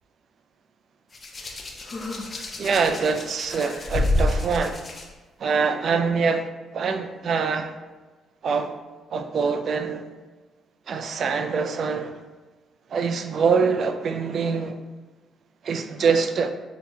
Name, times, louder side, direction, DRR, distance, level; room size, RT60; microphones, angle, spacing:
Hands, 1.1-5.0 6.1-6.3, left 1 dB, 35° left, 0.6 m, -28 dB
voice 1, 2.6-4.8 5.4-6.5 6.7-7.7 8.4-8.7 9.1-10.0 10.9-12.2 12.9-14.8 15.6-16.5, right 5 dB, 60° right, 7 dB, 0.3 m, -24 dB
5.6 x 2.8 x 2.3 m, 1.2 s
cardioid pair, 90°, 0 cm